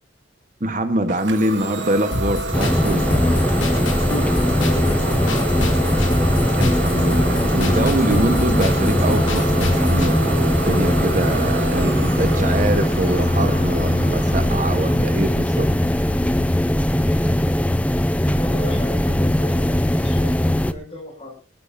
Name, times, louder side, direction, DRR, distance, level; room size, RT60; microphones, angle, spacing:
voice 1, 0.6-3.1 6.6-15.7, right 1 dB, 40° right, 8 dB, 1.3 m, -24 dB
Idling / Domestic sounds home sounds, 1.1-16.6, right 3 dB, 65° right, 1.8 m, -30 dB
sound 1, 2.1-10.1, left 2 dB, 85° left, 2.6 m, -27 dB
sound 2, 2.5-20.7, left 1 dB, 5° left, 0.7 m, -20 dB
voice 2, 4.6-6.3 18.3-20.3 20.7-21.4, left 2 dB, 30° left, 1 dB, 7.3 m, -35 dB
21.0 x 14.0 x 2.7 m, 0.36 s
head